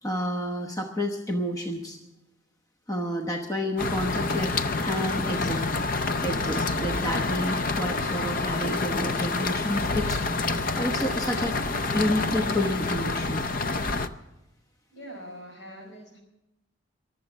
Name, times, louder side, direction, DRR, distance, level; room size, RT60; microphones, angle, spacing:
voice 1, 0.0-2.0 2.9-5.9 6.2-11.6 11.9-13.4, left 1 dB, 15° left, 3 dB, 1.0 m, -30 dB
sound 1, 3.8-14.1, left 3 dB, 45° left, 0.6 m, -28 dB
voice 2, 14.9-16.2, equal, 70° left, 3 dB, 4.7 m, -43 dB
22.5 x 7.8 x 7.1 m, 0.93 s
head